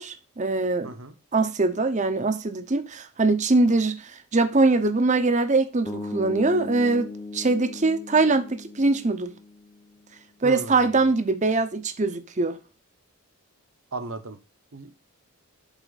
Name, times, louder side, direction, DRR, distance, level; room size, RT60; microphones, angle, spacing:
voice 1, 0.0-0.9 1.3-9.3 10.4-12.6, right 3 dB, 35° right, 0.8 m, -23 dB
voice 2, 0.8-1.1 10.4-11.0 13.9-14.4 14.7-15.0, right 3 dB, 65° right, 1.0 m, -36 dB
sound 1, 5.9-10.0, left 2 dB, 20° left, 0.7 m, -38 dB
8.2 x 3.9 x 4.0 m
head